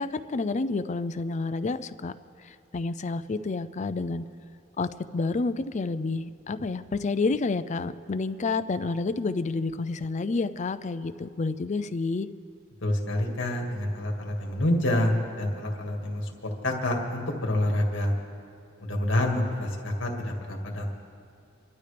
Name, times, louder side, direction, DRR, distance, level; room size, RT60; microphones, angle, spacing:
voice 1, 0.0-2.1 2.4-4.2 4.8-12.3, left 3 dB, 35° left, 12 dB, 0.4 m, -29 dB
voice 2, 12.8-16.3 16.6-18.1 18.8-21.1, left 1 dB, 65° left, 1 dB, 2.0 m, -27 dB
28.0 x 12.5 x 3.4 m, 2.4 s
head